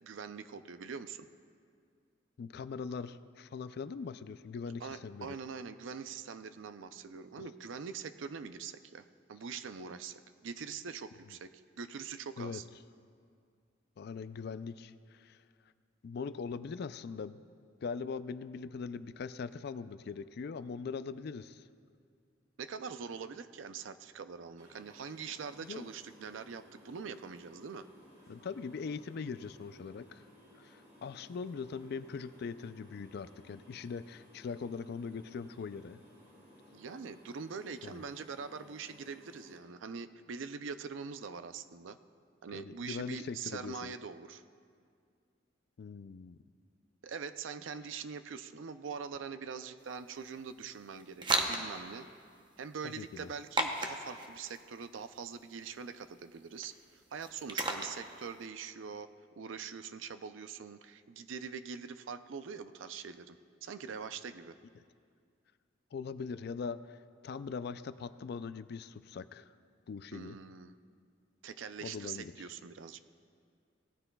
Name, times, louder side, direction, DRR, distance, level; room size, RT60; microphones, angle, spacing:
voice 1, 0.0-1.3 4.8-11.5 11.8-12.7 22.6-27.9 36.7-42.0 42.4-44.4 47.0-52.1 52.6-56.7 57.1-59.1 59.4-64.6 70.1-70.8 71.4-73.0, right 6 dB, 80° right, 11 dB, 0.5 m, -43 dB
voice 2, 2.4-5.4 12.4-12.6 14.0-15.4 16.0-17.4 17.8-21.6 25.6-25.9 28.3-30.2 30.6-36.0 37.8-38.0 42.5-43.9 45.8-46.4 53.0-53.3 65.9-67.0 67.2-69.5 69.9-70.4 71.8-72.3, left 5 dB, 55° left, 14 dB, 0.3 m, -41 dB
sound 1, 24.6-39.6, equal, 40° right, 2.8 m, -59 dB
sound 2, 49.8-58.4, right 2 dB, 25° right, 0.7 m, -38 dB
18.0 x 13.5 x 2.3 m, 2.2 s
head